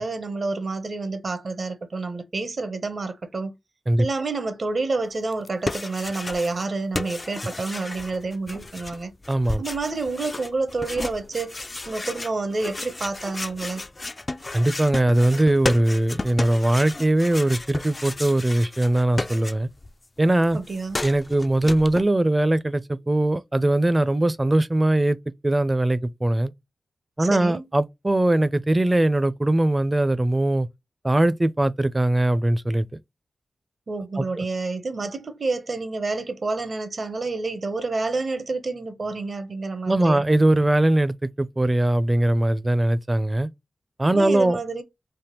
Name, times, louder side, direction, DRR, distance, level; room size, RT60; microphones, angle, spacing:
voice 1, 0.0-3.5 4.0-9.1 9.6-13.8 20.5-21.0 27.2-27.7 33.9-40.2 44.1-44.8, right 3 dB, 60° right, 0.7 m, -29 dB
sound 1, 5.3-6.7 6.9-19.9 20.2-22.0, left 2 dB, 40° left, 0.3 m, -33 dB
voice 2, 9.3-9.6 14.5-19.7 20.2-20.6 21.0-25.2 25.4-26.5 27.2-30.7 31.0-32.9 34.2-34.5 39.9-43.5 44.0-44.6, right 1 dB, 25° right, 0.5 m, -21 dB
3.5 x 2.1 x 2.9 m
cardioid pair, 45°, 0 cm